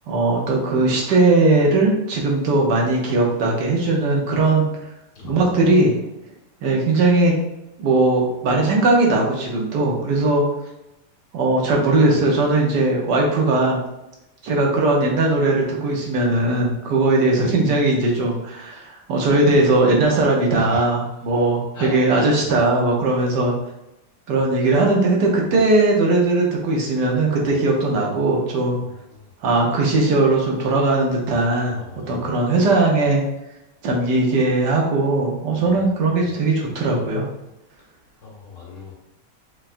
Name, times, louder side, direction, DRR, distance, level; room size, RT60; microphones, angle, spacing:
voice 1, 0.1-4.6 5.2-6.0 6.6-7.3 7.8-10.4 11.3-13.8 14.4-23.5 24.3-28.8 29.4-31.8 32.1-33.2 33.8-37.3, right 2 dB, 85° right, -1 dB, 1.5 m, -19 dB
voice 2, 21.7-22.3 24.6-24.7 29.1-29.2 31.7-32.3 38.2-38.9, left 3 dB, 85° left, -5 dB, 2.0 m, -37 dB
5.6 x 2.2 x 2.5 m, 0.89 s
omnidirectional pair, 1.8 m